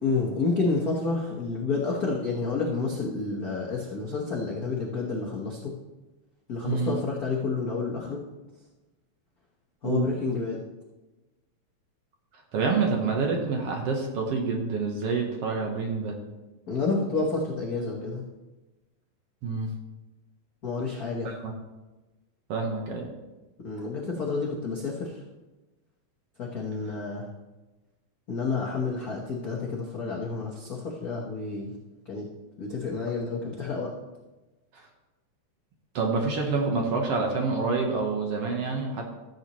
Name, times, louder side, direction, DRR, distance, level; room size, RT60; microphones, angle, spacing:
voice 1, 0.0-5.7 6.5-8.2 9.8-10.6 16.7-18.2 20.6-21.3 23.6-25.2 26.4-27.3 28.3-31.7 32.1-32.3 32.6-33.9, left 4 dB, 75° left, -4 dB, 0.8 m, -29 dB
voice 2, 6.6-7.0 9.8-10.1 12.5-16.2 19.4-19.7 21.2-21.5 22.5-23.1 36.0-39.1, right 4 dB, 60° right, 1 dB, 1.8 m, -27 dB
14.0 x 8.0 x 3.1 m, 1.1 s
omnidirectional pair, 3.6 m